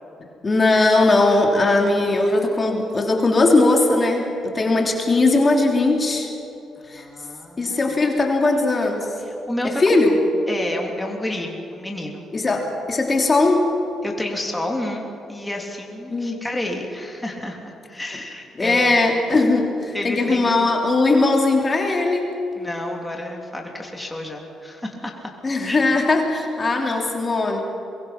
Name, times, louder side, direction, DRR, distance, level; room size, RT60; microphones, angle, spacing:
voice 1, 0.4-6.3 6.9-7.0 7.6-9.1 9.6-10.2 12.3-13.8 16.1-16.4 18.6-22.4 25.4-27.6, left 2 dB, 30° left, 1 dB, 3.2 m, -19 dB
voice 2, 6.8-7.8 9.2-10.0 10.5-12.3 14.0-18.9 19.9-20.5 22.6-25.3 25.6-25.8, left 1 dB, 10° left, 0 dB, 3.3 m, -30 dB
23.0 x 23.0 x 6.0 m, 3.0 s
cardioid pair, 90°, 0 cm